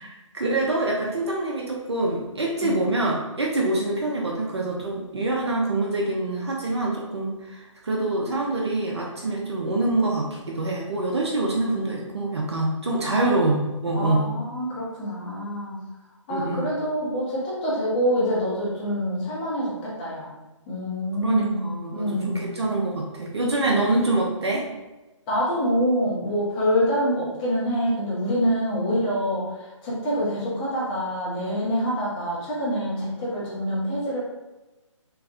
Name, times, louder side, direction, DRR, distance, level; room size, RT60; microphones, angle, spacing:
voice 1, 0.0-14.4 16.3-16.7 21.2-24.7, right 2 dB, 55° right, -2 dB, 0.5 m, -25 dB
voice 2, 13.1-13.4 13.9-15.7 16.3-20.3 20.7-21.6 21.9-22.5 23.7-23.8 25.3-34.2, equal, 15° left, -7 dB, 0.6 m, -26 dB
3.1 x 2.0 x 2.5 m, 1.1 s
figure-of-eight pair, 140°, 16 cm